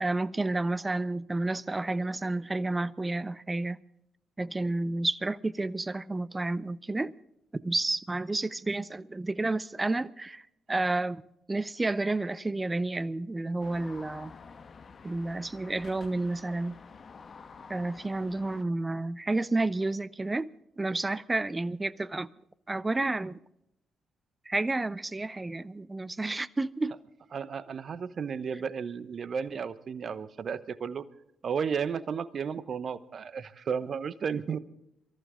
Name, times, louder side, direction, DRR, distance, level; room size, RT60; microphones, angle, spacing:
voice 1, 0.0-3.8 4.4-7.1 7.6-10.4 10.7-11.2 11.5-14.3 15.0-16.8 17.7-20.5 20.8-22.3 22.7-23.4 24.5-27.0, right 2 dB, 25° right, 0.7 m, -30 dB
sound 1, 13.6-18.6, left 5 dB, 50° left, 1.3 m, -49 dB
voice 2, 27.3-31.0 31.4-34.6, right 6 dB, 55° right, 1.0 m, -33 dB
23.5 x 14.0 x 3.8 m
hypercardioid pair, 45°, 0 cm